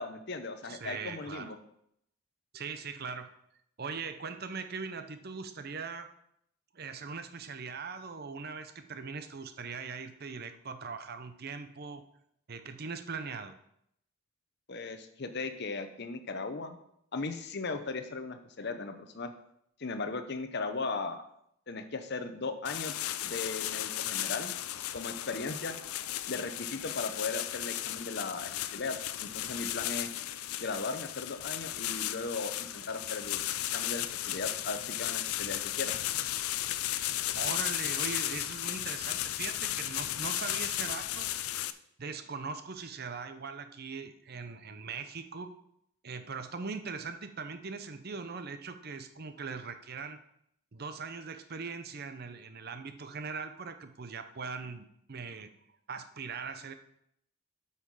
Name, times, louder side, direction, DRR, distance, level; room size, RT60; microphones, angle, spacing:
voice 1, 0.0-1.6 14.7-16.8 17.1-19.3 19.8-21.2 21.7-23.0 23.2-24.6 24.9-25.8 26.3-30.1 30.6-35.9, left 3 dB, 50° left, 8 dB, 0.8 m, -37 dB
voice 2, 0.6-1.5 2.5-3.3 3.8-6.1 6.7-12.0 12.5-13.5 37.3-41.3 42.0-45.5 46.0-50.2 50.7-55.5 55.9-56.7, right 5 dB, 45° right, 9 dB, 0.6 m, -40 dB
sound 1, 22.6-41.7, left 13 dB, 80° left, 0.4 m, -35 dB
8.2 x 5.7 x 4.8 m, 0.74 s
head